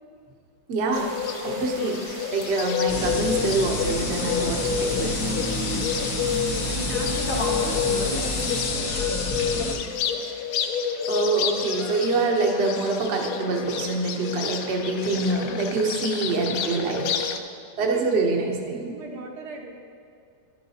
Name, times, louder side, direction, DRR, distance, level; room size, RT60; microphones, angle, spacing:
voice 1, 0.7-5.5 11.1-17.2 17.8-19.0, right 3 dB, 45° right, 1 dB, 0.9 m, -26 dB
Bird, 0.9-17.4, left 7 dB, 70° left, 0.8 m, -29 dB
sound 1, 0.9-8.7, right 2 dB, 30° right, 0.6 m, -41 dB
sound 2, 2.9-9.7, left 2 dB, 55° left, 1.2 m, -28 dB
voice 2, 6.5-9.2 9.8-10.2 17.8-18.1 18.9-19.7, right 2 dB, 70° right, 1 dB, 1.3 m, -38 dB
11.0 x 9.4 x 2.8 m, 2.5 s
omnidirectional pair, 1.9 m